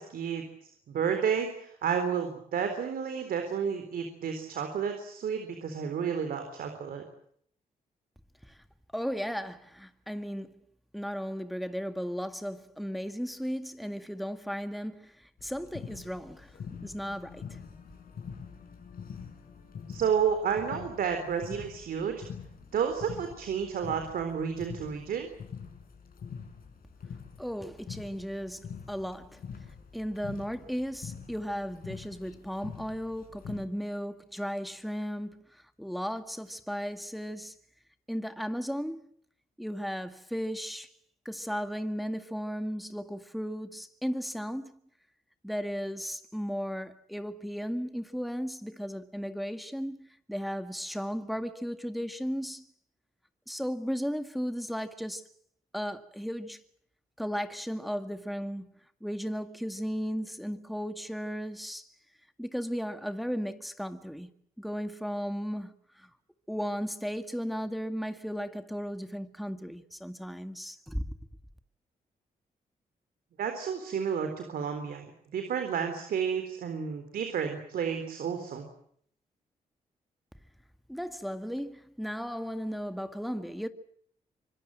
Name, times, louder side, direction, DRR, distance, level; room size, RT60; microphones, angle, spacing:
voice 1, 0.0-7.0 19.9-22.2 22.7-25.3 73.4-78.7, right 7 dB, 85° right, 3.9 m, -31 dB
voice 2, 8.9-10.6 10.9-17.6 27.4-29.4 29.9-37.5 38.1-39.1 39.6-40.9 41.3-44.8 45.4-52.7 53.5-55.3 55.7-56.6 57.2-61.9 62.4-64.3 64.6-66.1 66.5-71.1 80.9-83.7, equal, ahead, 2.0 m, -35 dB
sound 1, 15.4-33.6, left 6 dB, 75° left, 6.3 m, -45 dB
26.0 x 21.5 x 7.7 m
cardioid pair, 60°, 15 cm